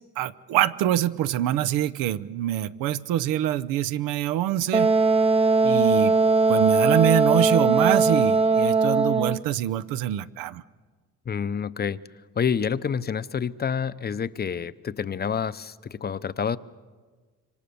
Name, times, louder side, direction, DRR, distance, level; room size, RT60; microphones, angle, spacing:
voice 1, 0.2-4.9 5.6-6.1 6.5-10.6, right 12 dB, 85° right, 11 dB, 0.9 m, -25 dB
Wind instrument woodwind instrument, 4.7-9.4, right 3 dB, 20° right, 0.7 m, -20 dB
voice 2, 11.3-12.0 12.4-16.6, left 7 dB, 30° left, 15 dB, 0.7 m, -28 dB
27.0 x 24.5 x 7.0 m, 1.4 s
cardioid pair, 105°, 33 cm